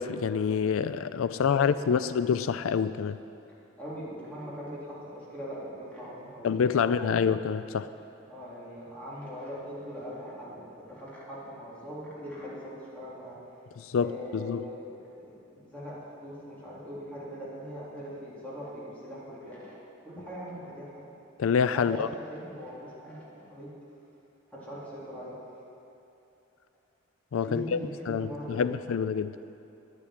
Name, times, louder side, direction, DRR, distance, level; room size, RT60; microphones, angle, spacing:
voice 1, 0.0-3.2 6.4-7.9 13.9-14.6 21.4-22.1 27.3-27.8 28.1-29.4, left 6 dB, 90° left, 14 dB, 0.4 m, -27 dB
voice 2, 1.3-2.1 3.8-7.3 8.2-13.4 14.0-16.0 16.2-19.8 20.0-20.9 21.7-23.7 24.5-25.3 27.4-28.9, equal, 5° left, -9 dB, 3.9 m, -41 dB
10.5 x 9.9 x 9.4 m, 2.8 s
head